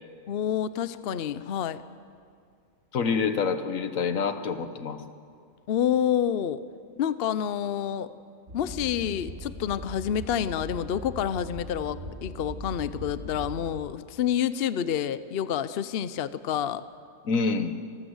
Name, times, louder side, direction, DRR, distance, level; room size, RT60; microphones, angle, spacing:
voice 1, 0.3-1.8 5.7-6.6 7.0-8.1 8.5-16.8, left 9 dB, 55° left, 14 dB, 0.7 m, -28 dB
voice 2, 2.9-5.0 17.2-17.7, left 5 dB, 75° left, 10 dB, 1.5 m, -27 dB
sound 1, 8.5-13.7, right 1 dB, 60° right, 4.2 m, -40 dB
25.0 x 14.5 x 8.0 m, 2.3 s
omnidirectional pair, 1.4 m